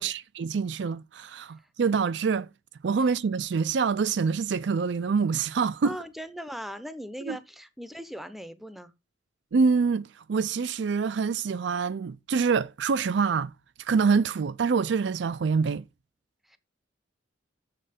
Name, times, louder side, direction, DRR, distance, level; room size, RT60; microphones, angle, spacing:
voice 1, 0.0-2.5 2.8-5.9 7.3-7.4 9.5-13.5 13.8-15.8, right 5 dB, 65° right, 0.4 m, -26 dB
voice 2, 5.8-8.9 16.5-16.6, equal, ahead, 0.6 m, -39 dB
7.4 x 6.6 x 5.0 m
head